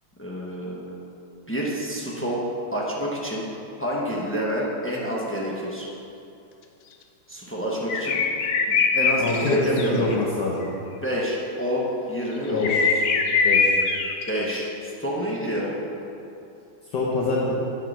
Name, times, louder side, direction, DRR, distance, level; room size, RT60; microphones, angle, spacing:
voice 1, 0.2-1.1 1.5-2.4 2.7-3.4 3.8-5.9 7.3-8.2 8.7-10.1 11.0-12.9 14.3-15.8, equal, 20° left, -5 dB, 0.3 m, -28 dB
sound 1, 7.9-10.2 12.6-14.6, left 5 dB, 80° left, 1.5 m, -22 dB
voice 2, 9.2-10.6 12.5-12.9 13.4-13.8 16.9-17.5, left 2 dB, 60° left, -5 dB, 1.5 m, -25 dB
9.5 x 4.8 x 6.1 m, 2.7 s
omnidirectional pair, 2.3 m